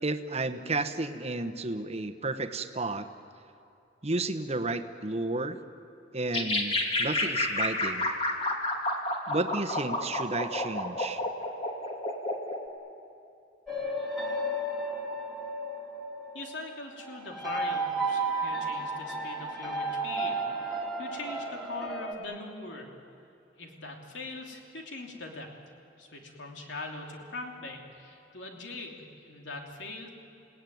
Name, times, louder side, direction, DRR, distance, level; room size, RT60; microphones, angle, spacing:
voice 1, 0.0-3.1 4.0-5.6 6.1-8.1 9.3-11.2, right 2 dB, 35° right, 9 dB, 1.1 m, -32 dB
sound 1, 6.3-12.6, left 1 dB, 35° left, 2.4 m, -30 dB
sound 2, 13.7-22.1, right 2 dB, ahead, 2.7 m, -33 dB
voice 2, 16.3-22.9 23.6-25.5 26.0-30.1, left 2 dB, 85° left, 1 dB, 3.0 m, -41 dB
29.5 x 18.0 x 9.4 m, 2.7 s
head